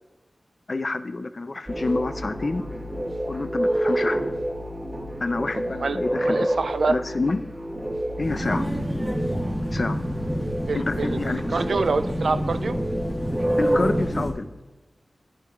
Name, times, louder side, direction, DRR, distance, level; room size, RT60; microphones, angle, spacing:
voice 1, 0.7-2.6 3.3-4.3 5.2-6.5 6.9-7.4 8.2-8.7 9.7-10.0 10.7-11.6 13.6-14.5, left 3 dB, 50° left, 11 dB, 0.4 m, -28 dB
sound 1, 1.7-14.3, right 1 dB, 30° right, 2.3 m, -29 dB
voice 2, 5.5-6.0 6.2-7.0 8.5-8.6 10.7-12.8, right 4 dB, 85° right, 11 dB, 0.3 m, -26 dB
sound 2, 8.2-14.3, equal, 15° right, 1.4 m, -29 dB
10.0 x 7.8 x 2.4 m, 1.2 s
wide cardioid pair, 85°, 0 cm